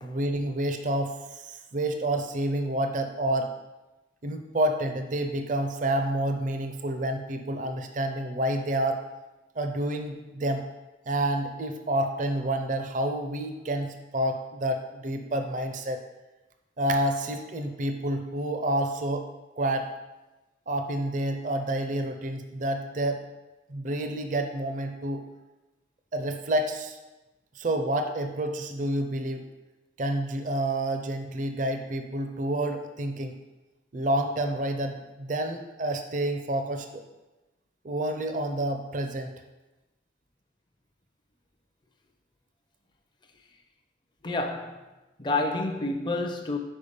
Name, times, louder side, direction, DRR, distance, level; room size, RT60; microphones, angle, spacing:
voice 1, 0.0-3.5 4.2-9.1 9.6-10.6 11.1-16.0 16.8-19.3 19.6-19.9 20.7-23.2 23.7-25.2 26.1-27.0 27.5-29.5 30.0-33.4 33.9-37.0 37.8-39.3, right 1 dB, 45° right, 6 dB, 0.5 m, -29 dB
voice 2, 44.2-44.8 45.2-46.6, left 2 dB, 25° left, 4 dB, 0.5 m, -29 dB
5.4 x 4.5 x 5.0 m, 1.1 s
head